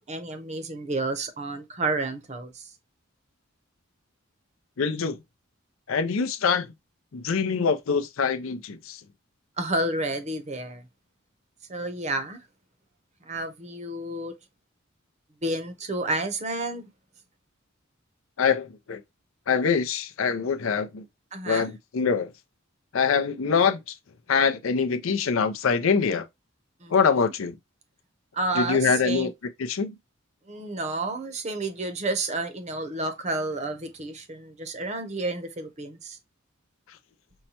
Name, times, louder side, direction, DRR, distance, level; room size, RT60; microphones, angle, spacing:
voice 1, 0.0-2.7 9.6-10.8 11.7-12.4 13.2-14.3 15.4-16.8 21.3-21.7 26.8-26.9 28.3-29.3 30.5-36.2, right 2 dB, 35° right, 0.7 m, -30 dB
voice 2, 4.8-5.2 5.9-6.7 7.1-9.0 18.4-19.0 19.5-21.0 21.5-22.3 22.9-23.8 24.3-26.3 26.9-27.6 28.5-29.3 29.6-29.9, left 5 dB, 75° left, 0.5 m, -24 dB
5.4 x 2.2 x 2.8 m
head